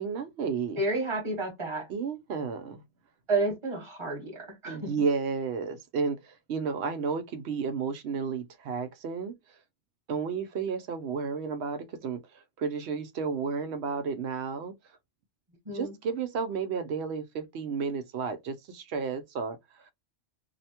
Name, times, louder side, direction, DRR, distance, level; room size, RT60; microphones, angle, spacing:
voice 1, 0.0-0.8 1.9-2.8 4.6-9.3 10.1-14.7 15.7-19.9, right 5 dB, 70° right, 0.8 m, -32 dB
voice 2, 0.8-1.9 3.3-4.8 15.6-15.9, right 2 dB, 25° right, 1.2 m, -30 dB
2.7 x 2.1 x 2.8 m
omnidirectional pair, 1.3 m